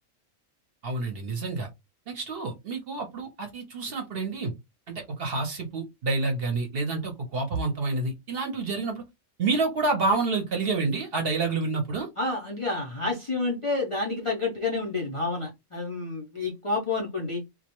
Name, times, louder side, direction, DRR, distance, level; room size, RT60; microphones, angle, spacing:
voice 1, 0.8-1.7 2.1-4.5 4.9-9.0 9.4-12.1, right 3 dB, 55° right, 0.7 m, -28 dB
voice 2, 12.2-17.4, left 3 dB, 50° left, 0.3 m, -29 dB
2.3 x 2.1 x 2.8 m
omnidirectional pair, 1.4 m